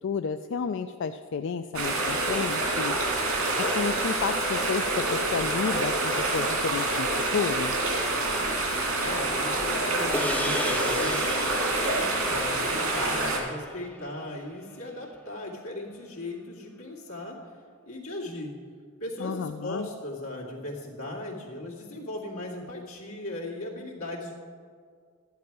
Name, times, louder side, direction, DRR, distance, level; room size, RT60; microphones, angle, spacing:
voice 1, 0.0-3.0 3.6-7.8 19.2-19.9, left 6 dB, 60° left, 8 dB, 0.4 m, -31 dB
sound 1, 1.7-13.4, right 2 dB, 85° right, 2.5 m, -27 dB
voice 2, 9.0-17.5 17.9-18.5 19.0-24.3, left 1 dB, 85° left, -3 dB, 2.3 m, -37 dB
sound 2, 10.1-14.7, left 1 dB, 5° left, 0.5 m, -36 dB
13.0 x 10.5 x 4.7 m, 2.1 s
head